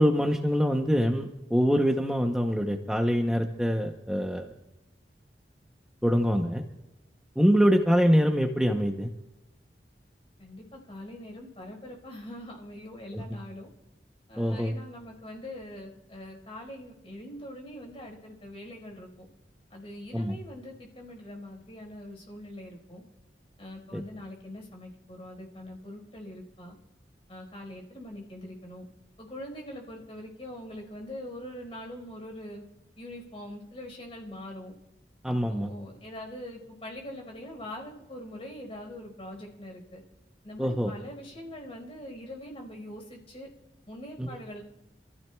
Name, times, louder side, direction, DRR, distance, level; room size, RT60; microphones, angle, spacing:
voice 1, 0.0-4.5 6.0-6.6 7.4-9.1 13.1-13.2 14.4-14.7 20.1-20.4 23.9-24.0 35.2-35.7 40.6-40.9 44.2-44.3, equal, 5° right, 2 dB, 0.7 m, -24 dB
voice 2, 10.4-13.7 14.3-19.3 19.7-23.0 23.6-26.8 27.3-28.8 29.2-32.6 33.0-34.7 35.3-40.0 40.4-43.5 43.9-44.6, left 1 dB, 35° left, 1 dB, 4.5 m, -43 dB
27.5 x 15.0 x 2.3 m, 0.98 s
head